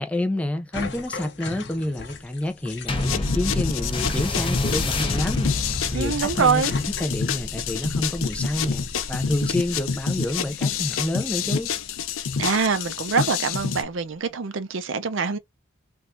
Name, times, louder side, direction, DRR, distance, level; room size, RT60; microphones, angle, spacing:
voice 1, 0.0-11.7, left 1 dB, 5° left, 0.3 m, -28 dB
sound 1, 0.7-13.2, left 5 dB, 60° left, 0.8 m, -41 dB
sound 2, 2.9-11.7 12.4-12.5, left 2 dB, 25° left, 0.7 m, -30 dB
sound 3, 3.0-13.8, left 6 dB, 90° left, 0.5 m, -28 dB
voice 2, 5.9-6.7 12.4-15.4, right 5 dB, 75° right, 0.6 m, -24 dB
3.5 x 2.4 x 2.5 m
head